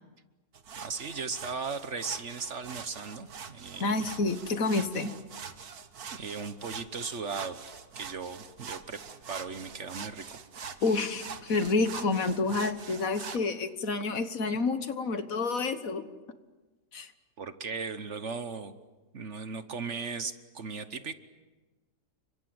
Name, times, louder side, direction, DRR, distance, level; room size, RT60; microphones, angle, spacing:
sound 1, 0.5-13.4, right 6 dB, 70° right, 1.8 m, -44 dB
voice 1, 0.8-4.0 6.1-7.6 7.9-9.0 9.3-10.4 17.4-18.8 19.1-21.1, right 5 dB, 50° right, 11 dB, 1.3 m, -37 dB
voice 2, 3.8-5.1 10.8-16.0 16.9-17.1, left 3 dB, 60° left, 10 dB, 1.7 m, -29 dB
30.0 x 25.0 x 7.9 m, 1.2 s
omnidirectional pair, 1.7 m